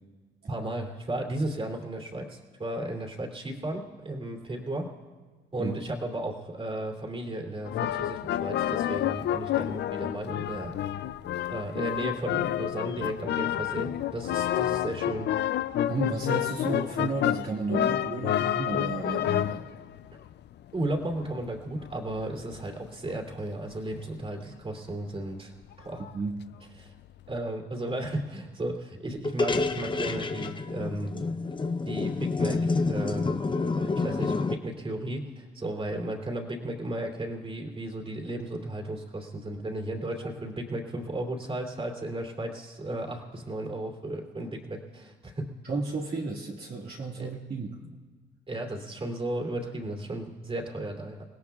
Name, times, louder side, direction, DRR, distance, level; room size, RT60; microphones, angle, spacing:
voice 1, 0.5-4.9 5.5-10.7 11.5-15.3 20.7-26.0 26.8-26.9 27.3-31.1 31.9-33.3 33.8-45.5 47.2-47.3 48.5-51.2, right 1 dB, 30° right, 1 dB, 2.8 m, -34 dB
sound 1, 7.7-22.7 23.7-23.8 25.7-25.8 26.0-26.2 26.5-26.6 27.3-27.4, left 11 dB, 60° left, 0.4 m, -29 dB
voice 2, 15.9-19.7 26.1-26.5 45.6-48.0, right 3 dB, 55° right, -3 dB, 2.0 m, -33 dB
sound 2, 29.2-34.6, left 3 dB, 25° left, 0.7 m, -28 dB
29.0 x 17.0 x 2.4 m, 1.4 s
cardioid pair, 90°, 20 cm